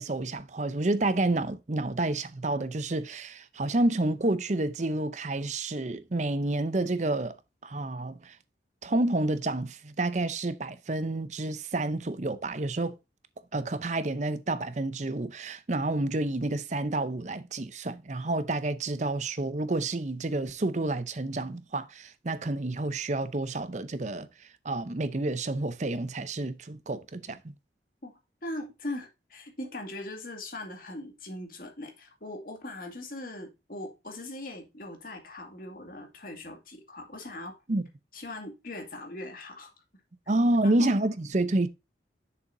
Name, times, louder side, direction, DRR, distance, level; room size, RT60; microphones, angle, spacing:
voice 1, 0.0-7.3 7.6-8.4 8.8-13.0 13.5-24.3 24.6-27.5 37.7-37.8 40.3-41.7, right 2 dB, 40° right, 0.7 m, -29 dB
voice 2, 28.4-37.6 38.1-39.7 40.6-40.9, left 1 dB, 50° left, 2.2 m, -40 dB
8.1 x 6.9 x 2.7 m
head